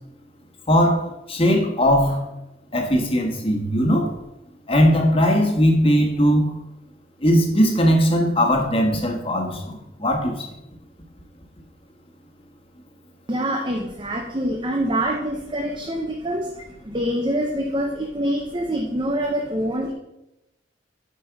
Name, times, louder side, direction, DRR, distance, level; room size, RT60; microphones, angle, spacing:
voice 1, 0.7-2.2 2.7-4.1 4.7-6.5 7.2-10.4, equal, 30° left, 2 dB, 1.5 m, -19 dB
voice 2, 13.3-16.5 16.8-19.9, right 1 dB, 25° right, 2 dB, 0.7 m, -25 dB
9.0 x 5.4 x 4.7 m, 0.90 s
head